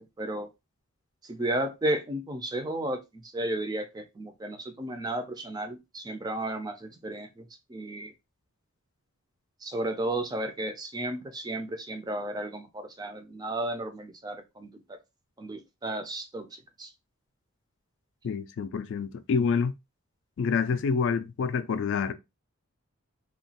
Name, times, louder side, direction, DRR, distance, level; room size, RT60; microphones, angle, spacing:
voice 1, 0.2-0.5 1.2-7.4 7.7-8.1 9.6-14.7 15.4-16.9, right 1 dB, 20° right, 0.4 m, -33 dB
voice 2, 18.2-19.7 20.4-22.1, left 5 dB, 55° left, 0.3 m, -27 dB
2.9 x 2.2 x 2.7 m
head